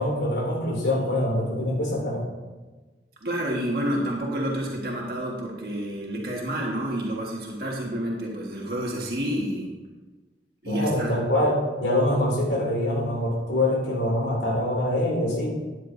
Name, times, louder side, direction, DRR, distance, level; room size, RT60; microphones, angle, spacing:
voice 1, 0.0-2.2 10.6-15.6, left 1 dB, 85° left, -2 dB, 2.8 m, -24 dB
voice 2, 3.2-9.7 10.6-11.1, equal, 60° right, -2 dB, 1.6 m, -29 dB
13.0 x 9.7 x 2.6 m, 1.3 s
head